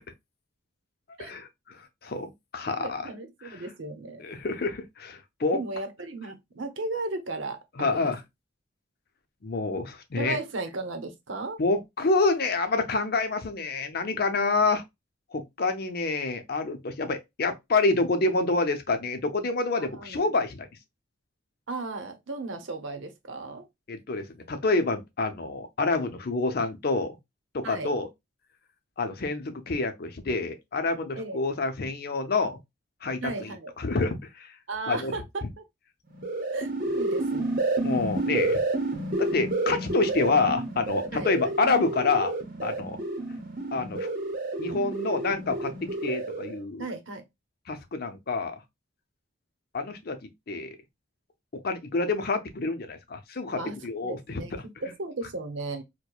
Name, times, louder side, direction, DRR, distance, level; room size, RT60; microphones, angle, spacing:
voice 1, 2.0-3.0 3.4-3.6 4.2-5.6 7.8-8.2 9.4-10.4 11.6-14.8 15.3-20.7 23.9-27.2 27.5-28.1 29.0-32.6 33.0-33.5 33.8-34.5 34.9-35.1 35.4-35.5 37.8-38.6 39.2-42.3 42.6-43.0 43.7-44.1 44.6-45.7 46.0-46.9 47.7-48.6 49.7-50.2 50.5-50.7 51.5-54.4, left 3 dB, 55° left, 0.6 m, -27 dB
voice 2, 2.7-4.2 5.5-8.1 10.1-11.6 19.9-20.3 21.7-23.7 27.6-27.9 31.2-31.4 33.2-33.7 34.7-35.6 36.5-37.6 41.1-41.5 46.8-47.2 53.5-54.5 54.8-55.8, right 3 dB, 85° right, 0.8 m, -35 dB
sound 1, 36.1-46.6, right 2 dB, 50° right, 0.9 m, -30 dB
4.5 x 2.2 x 2.3 m
head